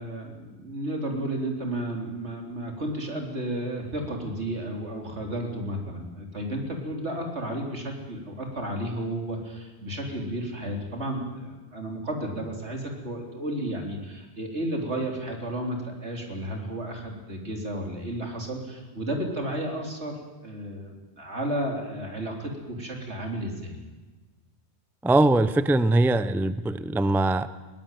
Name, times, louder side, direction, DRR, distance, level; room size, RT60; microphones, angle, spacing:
voice 1, 0.0-23.8, right 1 dB, 80° right, 2 dB, 4.1 m, -32 dB
voice 2, 25.0-27.5, right 2 dB, ahead, 13 dB, 0.5 m, -22 dB
21.5 x 17.5 x 9.2 m, 1.3 s
omnidirectional pair, 1.1 m